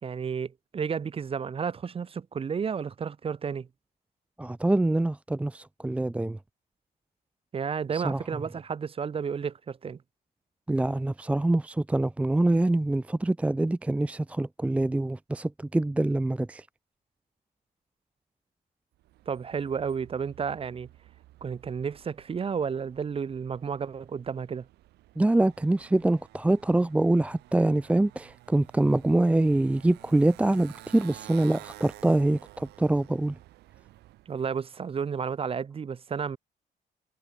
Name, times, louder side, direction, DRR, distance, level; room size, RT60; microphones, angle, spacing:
voice 1, 0.0-3.7 7.5-10.0 19.3-20.9 21.4-24.7 34.3-36.4, right 6 dB, 35° right, 2.0 m, -32 dB
voice 2, 4.4-6.4 7.9-8.2 10.7-16.7 25.2-33.4, right 2 dB, 10° right, 0.6 m, -25 dB
Motorcycle, 19.0-34.4, right 16 dB, 80° right, 2.4 m, -52 dB
cardioid pair, 110°, 17 cm